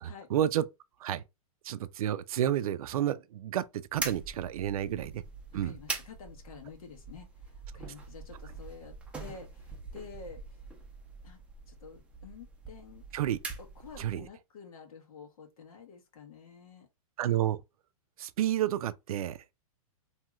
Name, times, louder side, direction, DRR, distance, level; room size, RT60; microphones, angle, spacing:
voice 1, 0.0-0.6 1.0-1.2 1.6-5.2 5.5-5.7 13.1-13.4 14.0-14.2 17.2-17.6 18.2-19.5, right 11 dB, 75° right, 0.4 m, -30 dB
sound 1, 3.9-14.3, right 4 dB, 5° right, 0.6 m, -43 dB
voice 2, 5.6-10.7 11.2-11.4 11.7-13.0 13.6-16.9, left 5 dB, 75° left, 1.2 m, -49 dB
2.9 x 2.7 x 2.4 m
hypercardioid pair, 140°, 19 cm